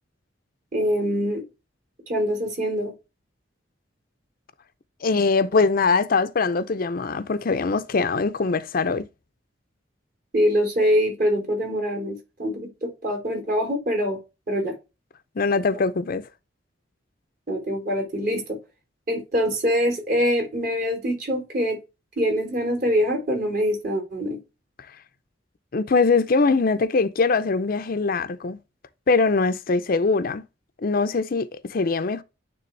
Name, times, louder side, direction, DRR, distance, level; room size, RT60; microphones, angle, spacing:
voice 1, 0.7-1.4 2.1-2.9 10.3-14.2 14.5-14.7 17.5-18.6 19.1-21.8 22.2-24.4, equal, 50° right, 3.3 m, -24 dB
voice 2, 5.0-9.1 15.4-16.3 25.7-28.6 29.1-30.4 30.8-32.2, left 4 dB, 50° left, 0.5 m, -22 dB
9.3 x 3.4 x 3.2 m
head